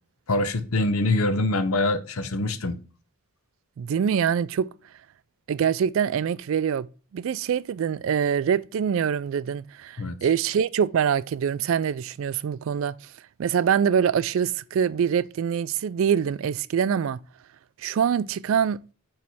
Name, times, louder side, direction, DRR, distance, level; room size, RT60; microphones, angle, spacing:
voice 1, 0.3-2.8 10.0-10.2, left 2 dB, 80° left, 0.7 m, -24 dB
voice 2, 3.8-4.7 5.5-6.9 7.1-12.9 13.4-17.2 17.8-18.8, right 7 dB, 65° right, 0.3 m, -24 dB
8.3 x 3.2 x 4.2 m
head